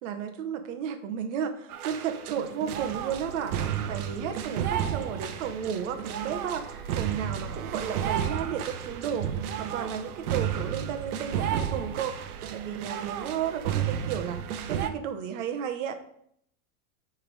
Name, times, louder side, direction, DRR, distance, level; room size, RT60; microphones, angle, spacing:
voice 1, 0.0-3.5 3.9-9.3 9.6-12.1 12.5-14.4 14.7-15.9, right 8 dB, 55° right, 7 dB, 1.0 m, -33 dB
sound 1, 1.7-14.9, right 9 dB, 85° right, 0.9 m, -32 dB
9.5 x 3.5 x 4.7 m, 0.69 s
supercardioid pair, 155°, 44 cm